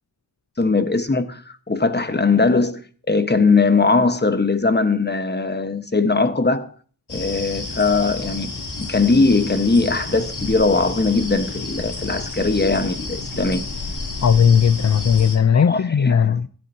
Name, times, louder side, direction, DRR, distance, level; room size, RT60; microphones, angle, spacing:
voice 1, 0.6-6.7 7.1-13.6 15.5-16.4, left 3 dB, 25° left, 1.2 m, -20 dB
sound 1, 7.1-15.4, left 3 dB, 75° left, 3.2 m, -31 dB
voice 2, 14.2-16.5, left 7 dB, 45° left, 0.5 m, -16 dB
16.0 x 11.0 x 2.8 m
wide cardioid pair, 75°, 40 cm